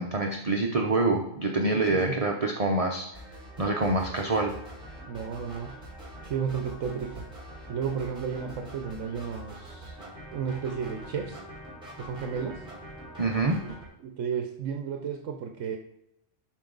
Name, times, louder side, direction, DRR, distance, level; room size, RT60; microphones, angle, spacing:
voice 1, 0.0-3.1 3.6-4.5 13.2-13.6, right 2 dB, 35° right, 1 dB, 0.7 m, -26 dB
voice 2, 1.7-2.2 5.1-5.8 6.2-7.3 7.7-10.0 10.3-11.4 12.0-12.6 13.6-13.8 14.0-15.8, right 7 dB, 70° right, 4 dB, 1.1 m, -33 dB
sound 1, 3.1-13.9, right 1 dB, 5° right, 3.2 m, -44 dB
12.0 x 4.6 x 3.9 m, 0.83 s
omnidirectional pair, 1.4 m